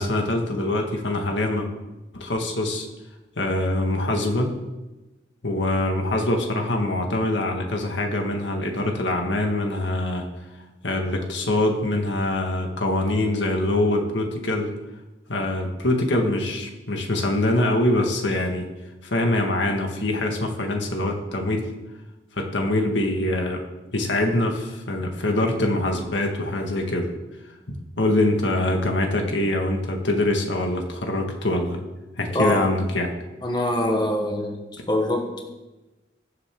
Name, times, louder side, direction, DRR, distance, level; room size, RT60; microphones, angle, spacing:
voice 1, 0.0-1.7 2.1-2.9 3.4-4.6 5.4-10.3 10.8-14.7 15.3-18.7 19.0-21.7 22.3-23.6 23.9-27.1 27.7-31.8 32.2-33.1, left 1 dB, 75° left, 2 dB, 1.9 m, -24 dB
voice 2, 32.3-32.7 33.4-34.6 34.9-35.4, left 1 dB, 25° left, 1 dB, 1.4 m, -24 dB
21.5 x 7.5 x 3.8 m, 1.1 s
head